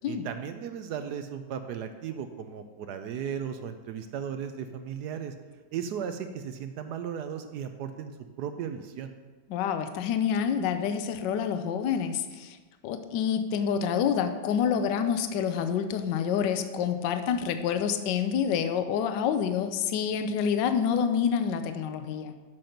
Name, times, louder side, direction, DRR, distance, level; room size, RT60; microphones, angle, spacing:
voice 1, 0.1-5.3 5.7-8.1 8.4-9.1, right 8 dB, 75° right, 8 dB, 1.0 m, -36 dB
voice 2, 9.5-12.6 12.8-22.3, left 7 dB, 75° left, 9 dB, 1.2 m, -27 dB
7.7 x 5.9 x 5.1 m, 1.3 s
omnidirectional pair, 2.1 m